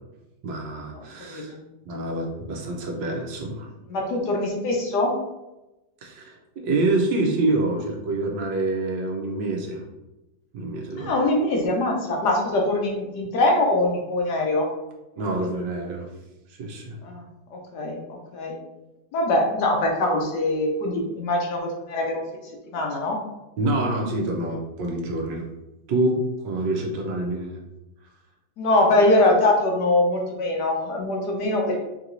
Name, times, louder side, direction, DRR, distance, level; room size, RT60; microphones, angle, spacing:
voice 1, 0.4-1.6 1.9-3.7 6.0-9.8 10.5-11.1 15.2-16.1 16.5-17.0 23.6-25.5 25.9-27.6, right 2 dB, 75° right, 1 dB, 1.4 m, -26 dB
voice 2, 3.9-5.1 11.0-14.7 17.0-17.2 17.5-18.6 19.1-22.2 22.7-23.2 28.6-31.8, left 2 dB, 70° left, 0 dB, 1.2 m, -23 dB
4.7 x 2.9 x 2.5 m, 0.98 s
omnidirectional pair, 2.1 m